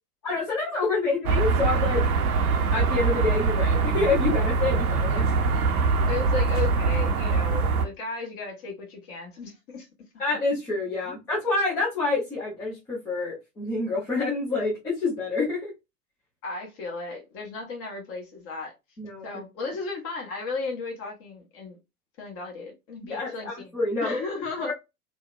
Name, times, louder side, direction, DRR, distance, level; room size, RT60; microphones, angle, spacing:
voice 1, 0.2-2.1 2.7-5.2 10.2-15.7 19.0-19.3 23.0-24.1 24.6-24.7, left 3 dB, 5° left, 0.3 m, -27 dB
sound 1, 1.2-7.8, right 4 dB, 70° right, 0.6 m, -23 dB
voice 2, 6.0-9.9 11.1-11.2 16.4-18.7 19.2-21.8 22.2-23.7 24.0-24.7, left 4 dB, 30° left, 0.9 m, -35 dB
2.7 x 2.1 x 2.3 m
figure-of-eight pair, 90°, 45 cm